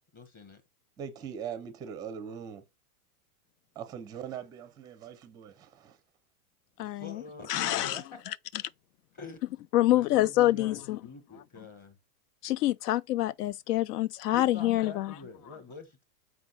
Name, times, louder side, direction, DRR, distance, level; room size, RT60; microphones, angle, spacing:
voice 1, 0.1-0.6 6.8-8.3 9.1-9.4 9.9-12.0 14.3-16.0, left 4 dB, 20° left, 1.2 m, -46 dB
voice 2, 1.0-2.6 3.8-6.0, right 8 dB, 10° right, 0.5 m, -41 dB
voice 3, 6.8-7.2 7.5-8.0 9.7-11.0 12.4-15.1, left 15 dB, 85° left, 0.5 m, -26 dB
8.4 x 4.6 x 4.1 m
supercardioid pair, 165°, 46 cm